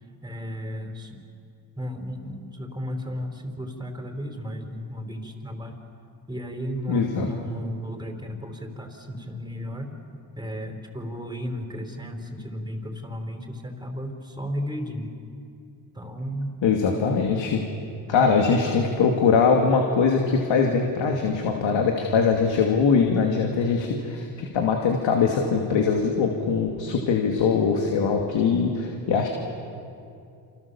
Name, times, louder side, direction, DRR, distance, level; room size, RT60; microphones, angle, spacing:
voice 1, 0.2-1.2 1.8-5.8 6.3-9.9 10.3-15.1 15.9-16.5 18.1-18.8, equal, 10° right, 4 dB, 4.6 m, -34 dB
voice 2, 6.9-7.3 16.6-17.6 18.1-29.3, left 5 dB, 75° left, 2 dB, 2.7 m, -22 dB
28.5 x 28.0 x 7.2 m, 2.5 s
cardioid pair, 85°, 46 cm